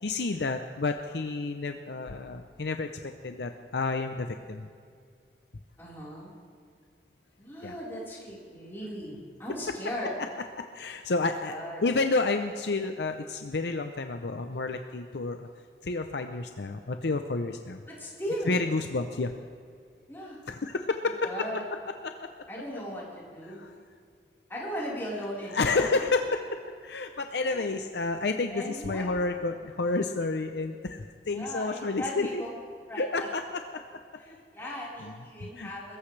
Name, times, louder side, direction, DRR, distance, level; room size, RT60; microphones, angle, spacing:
voice 1, 0.0-2.9 3.2-4.7 7.6-7.7 10.7-11.5 11.8-15.5 15.8-17.8 18.5-19.3 20.5-21.2 22.0-22.3 23.5-23.7 25.5-32.4 33.0-33.6 35.0-35.1 35.4-35.7, left 3 dB, 75° left, 6 dB, 0.7 m, -30 dB
voice 2, 5.8-6.3 7.4-10.1 11.4-11.8 17.9-18.7 20.1-20.4 21.2-21.6 22.5-23.6 24.5-26.0 27.4-27.8 28.5-29.1 31.3-32.5 32.9-33.3 34.2-36.0, equal, 15° left, -7 dB, 4.3 m, -37 dB
22.5 x 14.5 x 3.3 m, 2.2 s
head